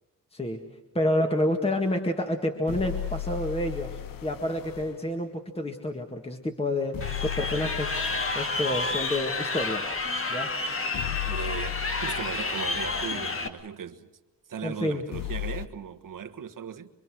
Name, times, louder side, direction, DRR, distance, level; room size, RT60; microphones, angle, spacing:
voice 1, 0.3-0.6 0.9-8.0 8.4-9.8 10.3-10.5 14.6-15.0, left 1 dB, 20° left, 1.9 m, -29 dB
sound 1, 2.7-5.0 6.9-9.0 10.9-13.1 15.1-15.7, left 13 dB, 85° left, 0.9 m, -35 dB
Crowd, 7.0-13.5, left 3 dB, 40° left, 2.2 m, -30 dB
voice 2, 11.2-14.1 14.5-16.9, right 7 dB, 75° right, 1.5 m, -37 dB
26.0 x 24.0 x 6.3 m
wide cardioid pair, 120°, 33 cm